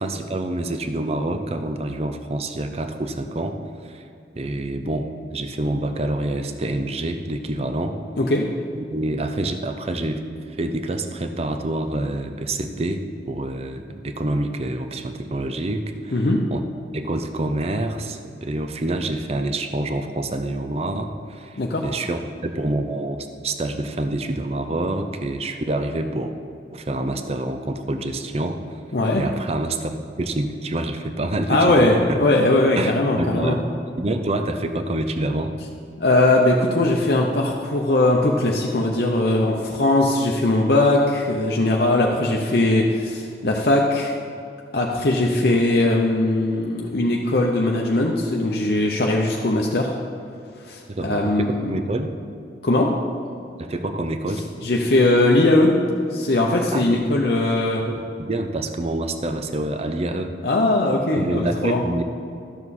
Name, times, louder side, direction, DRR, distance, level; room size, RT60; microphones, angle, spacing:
voice 1, 0.0-3.6 3.8-4.0 4.4-8.0 8.7-10.2 10.6-16.2 16.5-16.6 16.9-26.3 26.7-28.6 29.2-31.8 32.1-32.2 32.8-33.6 34.0-35.5 50.9-52.1 53.6-54.4 56.7-57.0 57.8-60.3 61.2-62.0, right 2 dB, 35° right, 7 dB, 0.5 m, -27 dB
voice 2, 8.1-8.5 16.1-16.4 21.6-21.9 28.9-29.2 31.5-33.6 36.0-44.1 44.7-49.9 50.7-51.7 52.6-52.9 54.6-55.8 56.1-57.8 60.4-61.8, left 2 dB, 60° left, -1 dB, 0.7 m, -20 dB
12.5 x 7.1 x 4.2 m, 2.5 s
head